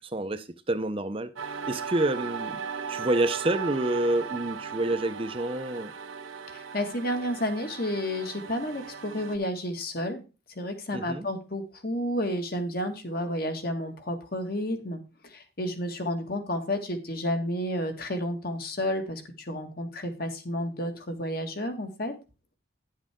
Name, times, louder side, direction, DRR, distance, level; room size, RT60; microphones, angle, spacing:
voice 1, 0.0-2.6 2.9-5.9 10.9-11.2, right 1 dB, 25° right, 9 dB, 0.6 m, -28 dB
sound 1, 1.4-9.4, right 6 dB, 85° right, 1.2 m, -37 dB
voice 2, 6.5-10.2 10.6-22.1, left 1 dB, 45° left, 6 dB, 1.8 m, -31 dB
11.0 x 7.6 x 3.6 m, 0.31 s
head